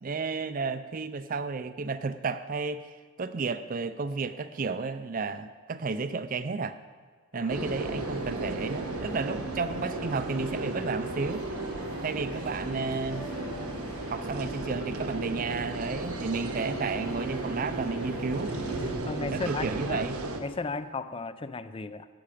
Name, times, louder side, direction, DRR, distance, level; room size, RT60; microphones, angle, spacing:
voice 1, 0.0-2.9 3.2-6.8 7.3-11.5 12.0-13.3 14.1-18.6 19.3-20.2, right 4 dB, 40° right, 12 dB, 0.4 m, -32 dB
sound 1, 7.3-18.9, left 1 dB, 80° left, 2.8 m, -47 dB
sound 2, 7.5-20.4, right 2 dB, 85° right, 1.2 m, -34 dB
voice 2, 19.1-20.1 20.4-22.1, left 3 dB, 25° left, 13 dB, 0.4 m, -35 dB
14.0 x 8.6 x 5.0 m, 1.5 s
head